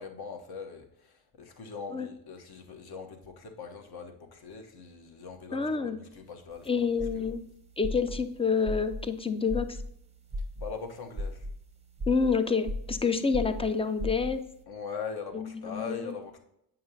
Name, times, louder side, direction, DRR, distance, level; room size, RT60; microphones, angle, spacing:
voice 1, 0.0-7.3 8.0-8.1 10.6-11.5 14.7-16.4, left 5 dB, 50° left, 4 dB, 1.0 m, -41 dB
voice 2, 5.5-6.0 6.7-7.4 7.8-9.8 12.1-14.4 15.3-16.1, left 5 dB, 15° left, 10 dB, 0.3 m, -28 dB
sound 1, 6.5-14.6, left 1 dB, 15° right, 0.7 m, -37 dB
7.7 x 5.6 x 2.7 m, 0.77 s
supercardioid pair, 60°, 48 cm